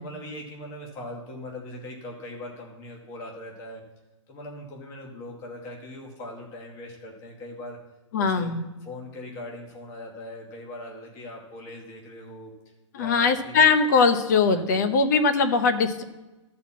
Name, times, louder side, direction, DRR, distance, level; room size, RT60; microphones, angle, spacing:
voice 1, 0.0-3.8 4.3-7.8 8.2-8.5 8.8-13.6 14.5-14.9, left 1 dB, 15° left, 0 dB, 1.2 m, -40 dB
voice 2, 8.1-8.6 12.9-16.0, left 5 dB, 35° left, 10 dB, 0.8 m, -21 dB
12.5 x 4.3 x 7.3 m, 1.1 s
hypercardioid pair, 175°, 16 cm